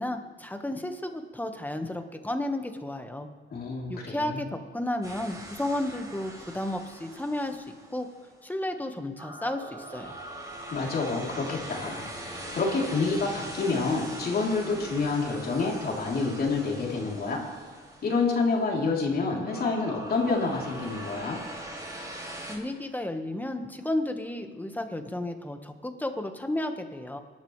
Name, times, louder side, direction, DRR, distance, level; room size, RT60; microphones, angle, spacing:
voice 1, 0.0-3.3 3.9-7.7 7.9-8.1 8.4-10.2 22.5-27.2, left 1 dB, 10° left, 6 dB, 1.4 m, -32 dB
voice 2, 3.5-4.4 10.7-17.4 18.0-21.4, left 3 dB, 50° left, -2 dB, 3.4 m, -28 dB
sound 1, 5.0-8.4 9.2-18.8 19.5-22.6, right 1 dB, 20° right, 4.3 m, -42 dB
24.0 x 12.0 x 3.3 m, 1.6 s
cardioid pair, 90°, 20 cm